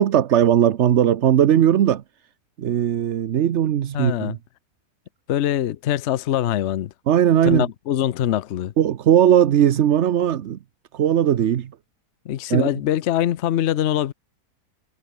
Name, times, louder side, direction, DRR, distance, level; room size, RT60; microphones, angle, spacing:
voice 1, 0.0-2.0 2.6-4.4 7.1-7.6 8.8-10.6 10.9-11.7 12.5-12.7, right 10 dB, 55° right, 0.9 m, -18 dB
voice 2, 3.9-4.4 5.3-6.9 7.4-8.7 12.2-14.1, left 11 dB, 60° left, 0.8 m, -23 dB
omnidirectional pair, 1.7 m